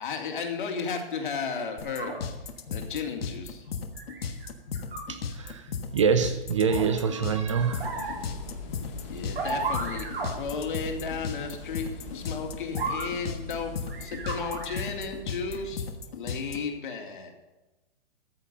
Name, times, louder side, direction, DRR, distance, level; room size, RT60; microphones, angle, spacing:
voice 1, 0.0-2.2 2.7-3.6 9.1-10.1 10.3-13.7 14.0-15.9 16.1-17.3, left 5 dB, 55° left, 3 dB, 2.4 m, -34 dB
sound 1, 1.8-16.6, left 6 dB, 75° left, 1.4 m, -35 dB
sound 2, 1.8-2.2 3.9-4.5 4.7-5.0 6.7-6.8 7.6-8.1 9.3-10.3 12.7-13.1 13.9-15.0 15.5-15.6, right 3 dB, 75° right, 4.8 m, -33 dB
voice 2, 5.1-8.0, right 6 dB, 30° right, 10 dB, 0.6 m, -26 dB
sound 3, 7.5-15.8, left 4 dB, 30° left, 1.9 m, -42 dB
14.5 x 5.9 x 7.9 m, 1.1 s
hypercardioid pair, 180°, 31 cm